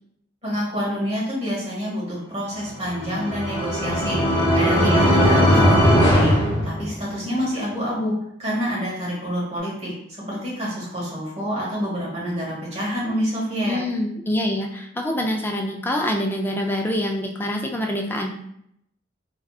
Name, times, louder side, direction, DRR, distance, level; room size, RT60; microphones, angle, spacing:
voice 1, 0.4-8.1 8.4-9.9 10.3-13.8, equal, 35° right, -6 dB, 1.3 m, -27 dB
sound 1, 2.7-7.3, equal, 30° left, 0.8 m, -19 dB
voice 2, 13.6-18.4, left 1 dB, 10° left, 1 dB, 0.3 m, -25 dB
3.7 x 2.3 x 2.3 m, 0.74 s
head